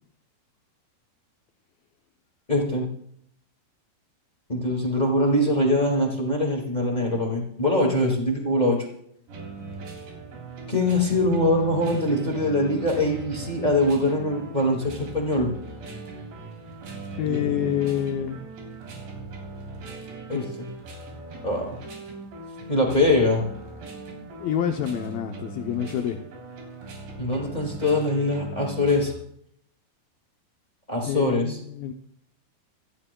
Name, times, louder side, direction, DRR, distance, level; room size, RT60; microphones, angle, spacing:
voice 1, 2.5-2.8 4.5-8.8 10.7-15.5 17.3-18.0 20.3-20.7 21.4-21.8 22.7-23.4 27.2-29.1 30.9-31.6, left 1 dB, 35° left, 0 dB, 0.6 m, -23 dB
sound 1, 9.3-29.1, right 3 dB, 90° right, 5.7 m, -39 dB
voice 2, 17.2-18.4 20.3-20.5 24.4-26.2 31.0-31.9, left 9 dB, 75° left, 4 dB, 2.3 m, -27 dB
26.5 x 12.0 x 2.3 m, 0.70 s
omnidirectional pair, 4.7 m